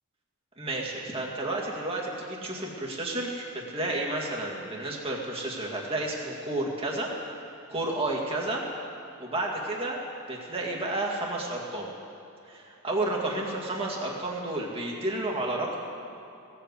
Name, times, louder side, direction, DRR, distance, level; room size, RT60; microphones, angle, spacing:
voice 1, 0.6-7.1 7.7-8.6 9.2-10.0 10.3-11.9 12.5-15.8, right 2 dB, 25° right, -3 dB, 2.1 m, -31 dB
16.5 x 7.9 x 8.3 m, 2.7 s
head